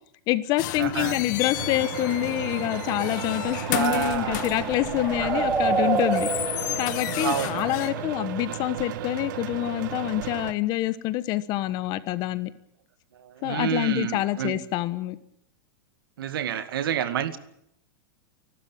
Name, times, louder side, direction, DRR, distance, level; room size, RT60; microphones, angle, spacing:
voice 1, 0.3-6.3 6.7-12.5 13.4-15.2, left 15 dB, 35° left, 14 dB, 1.3 m, -26 dB
sound 1, 0.6-7.9, left 15 dB, 55° left, 1.4 m, -33 dB
voice 2, 0.8-1.2 3.7-4.5 5.2-5.5 6.3-6.4 7.2-7.7 13.1-14.6 16.2-17.4, right 9 dB, 85° right, 11 dB, 2.1 m, -29 dB
sound 2, 1.6-10.5, right 11 dB, 60° right, 1.3 m, -35 dB
sound 3, 2.6-8.4, right 5 dB, 15° right, 1.1 m, -30 dB
29.5 x 12.5 x 8.9 m, 0.75 s
supercardioid pair, 155°, 12 cm